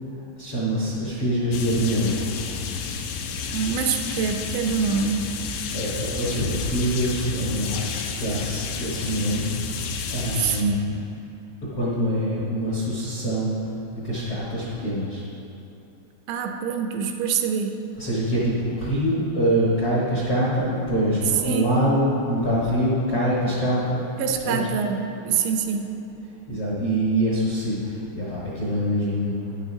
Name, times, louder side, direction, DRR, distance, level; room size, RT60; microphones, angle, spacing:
voice 1, 0.4-2.3 5.7-9.5 10.1-10.9 11.7-13.6 13.9-15.2 18.0-24.0 24.4-24.7 26.5-29.3, equal, 65° left, -8 dB, 1.4 m, -24 dB
sound 1, 1.5-10.6, left 5 dB, 90° left, 3.0 m, -31 dB
voice 2, 3.5-5.3 10.4-10.9 16.3-17.8 21.4-21.8 24.2-25.9, right 6 dB, 80° right, 4 dB, 2.8 m, -25 dB
12.5 x 10.5 x 2.8 m, 2.9 s
omnidirectional pair, 5.2 m